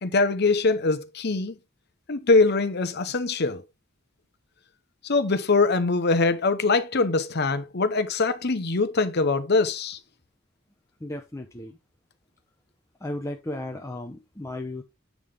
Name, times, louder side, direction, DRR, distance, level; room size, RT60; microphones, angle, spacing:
voice 1, 0.0-1.6 2.1-3.6 5.0-10.0, left 3 dB, 55° left, 0.9 m, -23 dB
voice 2, 11.0-11.8 13.0-14.8, left 1 dB, 15° left, 0.8 m, -35 dB
8.4 x 5.6 x 3.5 m
head